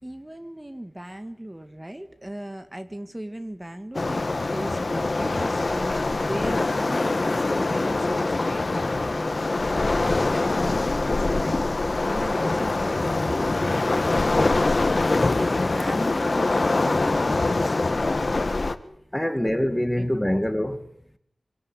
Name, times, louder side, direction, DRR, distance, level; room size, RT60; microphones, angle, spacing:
voice 1, 0.0-4.3 4.5-11.6 12.1-18.0 19.4-19.6 20.0-20.1 20.3-20.4, right 1 dB, 15° right, 1.7 m, -38 dB
Waves surf, 3.9-18.7, left 2 dB, 45° left, 1.7 m, -24 dB
voice 2, 12.1-12.5 18.8-20.9, equal, 5° left, 1.8 m, -26 dB
26.0 x 18.0 x 10.0 m
wide cardioid pair, 80°, 0 cm